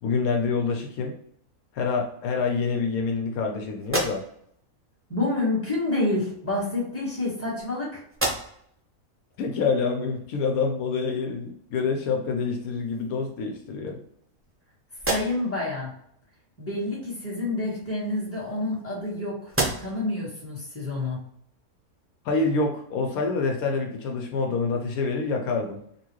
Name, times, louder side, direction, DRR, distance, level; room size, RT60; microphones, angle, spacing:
voice 1, 0.0-1.1 1.7-4.2 9.4-14.0 22.2-25.8, left 4 dB, 80° left, 3 dB, 1.0 m, -26 dB
sound 1, 3.8-4.6 5.8-5.9 6.9-7.7 8.1-8.8 9.3-9.4 12.1-12.2 12.6-13.3 13.9-14.6 14.9-15.6 17.6-19.1 19.5-20.1, right 2 dB, 20° right, 0.3 m, -32 dB
voice 2, 5.1-8.0 15.1-15.9 16.6-19.5 19.8-21.2, left 2 dB, 10° left, -6 dB, 1.3 m, -28 dB
4.0 x 2.4 x 3.0 m, 0.69 s
omnidirectional pair, 1.6 m